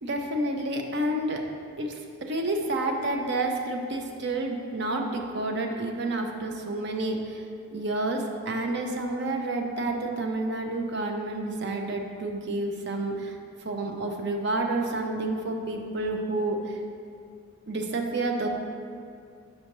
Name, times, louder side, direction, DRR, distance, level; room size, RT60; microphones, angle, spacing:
voice 1, 0.0-1.4 1.8-7.5 7.7-13.4 13.6-16.8 17.7-18.5, right 2 dB, 55° right, 3 dB, 0.6 m, -29 dB
6.4 x 5.5 x 3.0 m, 2.4 s
head